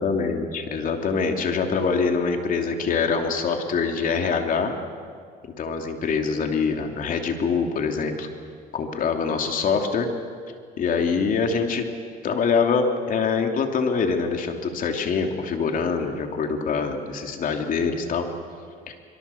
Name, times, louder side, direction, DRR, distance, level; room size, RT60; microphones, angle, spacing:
voice 1, 0.0-4.7 5.6-8.3 8.7-10.1 10.8-11.9 12.2-18.3 18.9-19.0, left 5 dB, 55° left, 4 dB, 3.0 m, -24 dB
25.5 x 23.0 x 7.1 m, 2.1 s
cardioid pair, 110°, 17 cm